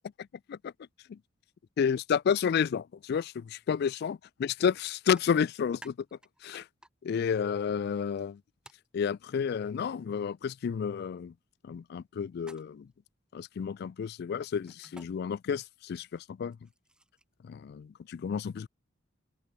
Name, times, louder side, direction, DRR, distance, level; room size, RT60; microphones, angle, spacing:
voice 1, 1.8-5.9 6.4-6.7 7.0-8.4 8.9-11.3 11.6-12.9 13.3-16.6 17.4-18.7, left 7 dB, 55° left, 0.3 m, -31 dB
sound 1, 4.7-4.8 5.1-6.9 8.6-8.9 12.4-12.9 14.7-15.1 16.4-17.3, right 1 dB, 5° right, 1.9 m, -53 dB
open air
head